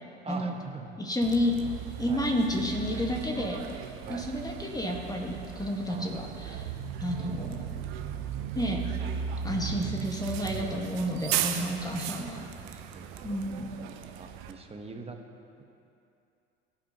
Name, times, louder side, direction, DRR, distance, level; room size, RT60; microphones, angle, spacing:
voice 1, 0.2-0.9 2.1-2.3 4.1-4.3 5.9-6.4 10.6-11.0 11.5-12.0 12.4-13.1 13.8-15.2, right 3 dB, 15° right, 4 dB, 1.3 m, -44 dB
voice 2, 1.0-1.6 2.0-6.7 7.0-7.6 8.5-8.8 9.4-12.4 13.2-13.7, left 1 dB, 10° left, 1 dB, 1.6 m, -31 dB
Bus, 1.2-14.5, right 9 dB, 60° right, 0.9 m, -36 dB
20.5 x 8.8 x 3.0 m, 2.6 s
hypercardioid pair, 70°, 34 cm